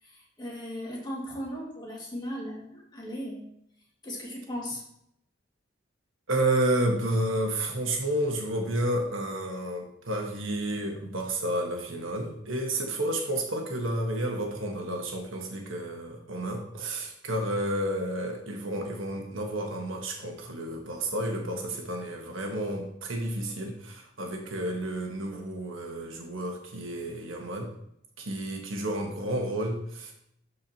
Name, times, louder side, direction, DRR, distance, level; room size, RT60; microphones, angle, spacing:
voice 1, 0.0-3.5 4.0-4.8, equal, 20° left, -3 dB, 2.2 m, -37 dB
voice 2, 6.3-27.7 28.2-30.1, right 1 dB, 75° right, 2 dB, 1.5 m, -31 dB
12.5 x 4.7 x 3.0 m, 0.73 s
head